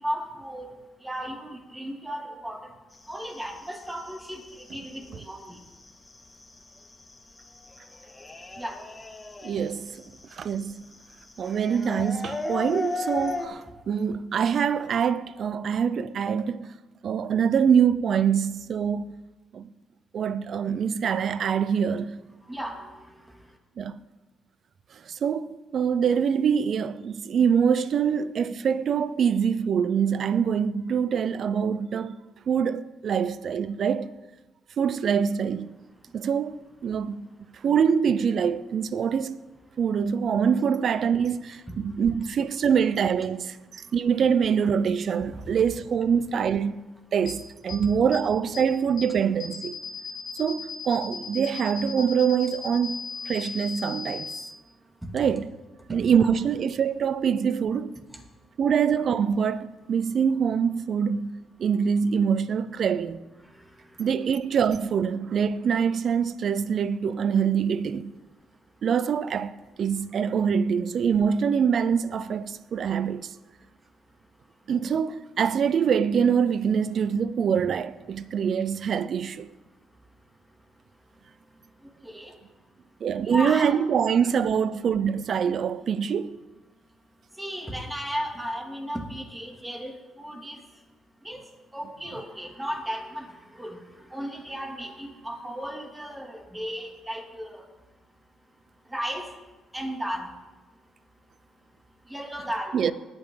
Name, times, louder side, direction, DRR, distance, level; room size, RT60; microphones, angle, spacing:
voice 1, 0.0-2.8 3.1-5.7 8.5-8.9 10.9-11.0 22.4-23.6 36.0-36.2 36.9-37.2 37.5-37.6 39.7-39.8 41.7-42.0 43.7-43.9 45.3-45.4 47.7-47.9 54.6-55.3 55.8-56.3 58.1-58.5 63.4-64.1 68.4-68.8 72.8-72.9 73.6-74.7 79.7-80.0 80.3-82.8 83.2-83.7 87.3-90.8 91.2-97.8 98.1-98.2 98.8-100.8 101.1-102.8, equal, 10° right, 2.6 m, -37 dB
sound 1, 2.9-13.5, left 3 dB, 20° left, 1.4 m, -37 dB
voice 2, 9.4-10.0 10.3-10.8 11.4-16.7 17.0-19.1 19.5-19.7 20.1-22.2 23.8-24.0 25.1-32.2 32.5-34.1 34.8-35.8 36.1-37.3 37.6-39.4 39.8-43.6 43.9-46.8 47.1-49.8 50.4-53.0 53.3-54.3 55.1-55.5 55.9-58.0 58.6-63.2 64.0-68.1 68.8-73.3 74.7-79.5 83.0-86.4 102.7-102.9, right 7 dB, 60° right, 0.6 m, -24 dB
sound 2, 47.3-47.4 47.7-47.8 48.1-48.2 48.5-48.6 49.0-49.1 49.4-54.4, left 6 dB, 70° left, 2.6 m, -36 dB
20.0 x 8.9 x 3.9 m
cardioid pair, 90°, 0 cm